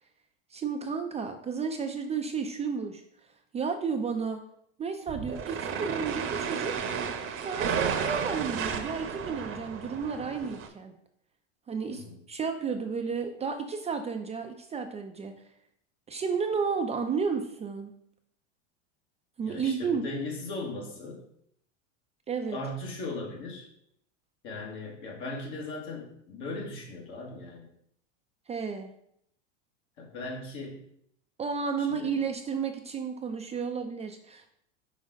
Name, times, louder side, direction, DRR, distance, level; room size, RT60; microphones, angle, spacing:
voice 1, 0.5-3.0 3.5-4.4 4.8-6.8 7.4-10.9 11.7-15.3 16.1-17.9 19.4-20.0 22.3-22.6 28.5-28.9 31.4-34.5, right 5 dB, 20° right, 5 dB, 0.4 m, -32 dB
sound 1, 5.1-10.7, right 6 dB, 35° right, 0.8 m, -33 dB
voice 2, 19.4-21.2 22.5-23.7 24.4-27.7 30.0-30.9 31.8-32.1, left 2 dB, 65° left, -1 dB, 2.2 m, -38 dB
5.2 x 5.0 x 4.0 m, 0.71 s
hypercardioid pair, 100°, 36 cm